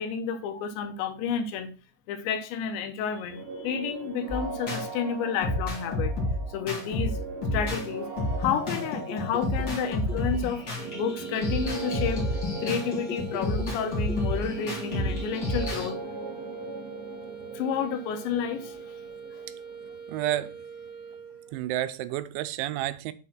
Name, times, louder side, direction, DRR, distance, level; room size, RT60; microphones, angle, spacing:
voice 1, 0.0-1.7 2.1-6.1 6.5-7.2 7.5-8.1 8.4-10.6 10.9-12.3 12.6-16.0 17.5-18.8 19.2-19.5, left 7 dB, 80° left, 3.1 m, -30 dB
sound 1, 3.3-20.9, right 3 dB, 50° right, 2.3 m, -40 dB
sound 2, 4.3-4.8 5.4-7.9 8.2-15.9, left 1 dB, 40° left, 1.8 m, -30 dB
sound 3, 10.7-21.6, right 6 dB, 70° right, 2.5 m, -42 dB
voice 2, 20.1-20.5 21.5-23.1, right 13 dB, 90° right, 3.0 m, -30 dB
7.2 x 4.2 x 5.8 m
omnidirectional pair, 5.3 m